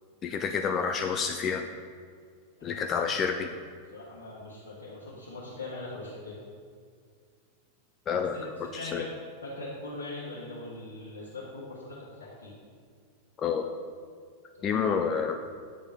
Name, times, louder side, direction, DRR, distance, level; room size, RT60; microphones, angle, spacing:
voice 1, 0.2-1.7 2.6-3.5 8.1-8.4 8.7-9.0 13.4-13.7 14.6-15.4, left 6 dB, 30° left, 5 dB, 0.4 m, -29 dB
voice 2, 3.9-6.4 8.1-9.1 9.4-12.5 14.5-14.7, left 2 dB, 65° left, -6 dB, 1.4 m, -41 dB
8.6 x 6.9 x 2.8 m, 2.1 s
figure-of-eight pair, 90°, 0 cm